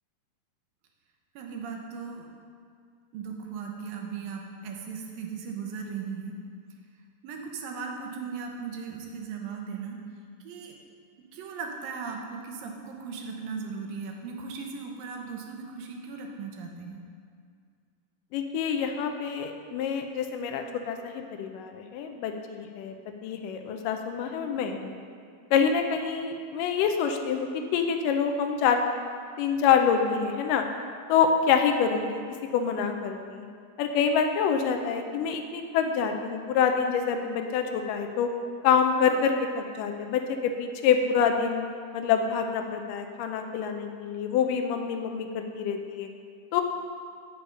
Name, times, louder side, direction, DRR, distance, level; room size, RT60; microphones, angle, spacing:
voice 1, 1.4-2.3 3.1-6.3 7.2-10.0 10.4-10.7 11.3-17.0, right 5 dB, 85° right, 2 dB, 2.7 m, -37 dB
voice 2, 18.3-22.9 23.2-24.9 25.5-28.8 29.4-30.6 31.1-32.2 32.5-33.5 33.8-38.3 38.6-41.6 41.9-46.1 46.5-46.6, left 6 dB, 80° left, 5 dB, 2.1 m, -26 dB
8.4 x 7.1 x 5.3 m, 2.2 s
omnidirectional pair, 3.9 m